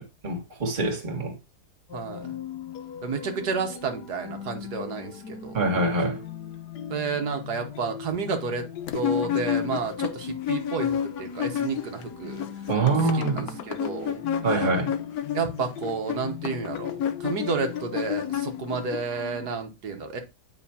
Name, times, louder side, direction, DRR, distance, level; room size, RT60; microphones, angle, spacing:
voice 1, 0.0-1.4 5.5-6.2 12.7-13.5 14.4-14.9, right 3 dB, 30° right, 1.7 m, -25 dB
sound 1, 1.9-19.5, left 8 dB, 85° left, 1.5 m, -40 dB
voice 2, 1.9-2.4 3.0-5.6 6.9-8.7 8.9-12.4 12.9-14.2 15.3-20.2, right 5 dB, 75° right, 1.6 m, -31 dB
sound 2, 8.9-12.0 12.3-19.0, left 9 dB, 65° left, 1.2 m, -30 dB
9.1 x 5.6 x 2.8 m
omnidirectional pair, 1.7 m